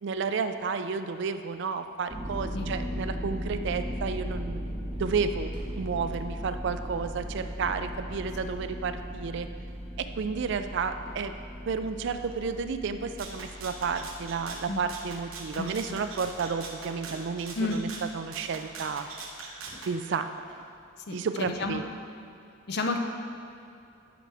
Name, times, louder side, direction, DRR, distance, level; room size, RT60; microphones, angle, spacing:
voice 1, 0.0-4.6 5.0-9.5 10.0-11.3 11.7-19.1 19.9-20.5 21.1-21.8, right 5 dB, 55° right, 9 dB, 0.3 m, -32 dB
sound 1, 2.1-17.9, equal, 5° right, 1.7 m, -38 dB
sound 2, 2.5-2.7 3.6-3.9 4.9-5.1 5.4-5.6 5.9-6.4 7.3-7.5 8.5-8.8 9.6-9.7 11.0-11.3 11.6-11.7 12.2-13.8 14.4-14.6 15.2-16.6 16.9-17.3 17.8-18.1 18.8-19.0 19.4-19.9 20.3-20.8, right 1 dB, 40° right, 1.9 m, -55 dB
Rattle (instrument), 13.2-19.9, right 4 dB, 70° right, 0.9 m, -42 dB
voice 2, 15.5-16.0 17.5-17.8 21.1-21.8 22.7-23.0, left 3 dB, 50° left, 4 dB, 0.5 m, -31 dB
11.5 x 4.8 x 3.4 m, 2.6 s
head